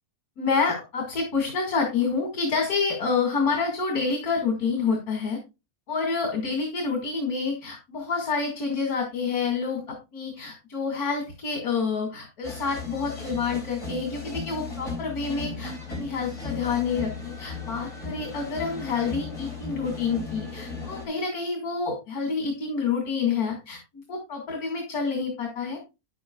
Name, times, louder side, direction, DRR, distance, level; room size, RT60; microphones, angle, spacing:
voice 1, 0.4-5.4 5.9-25.8, left 5 dB, 90° left, 1 dB, 2.6 m, -28 dB
sound 1, 12.4-21.1, left 4 dB, 55° left, 3.7 m, -36 dB
10.0 x 8.5 x 2.3 m, 0.25 s
omnidirectional pair, 1.5 m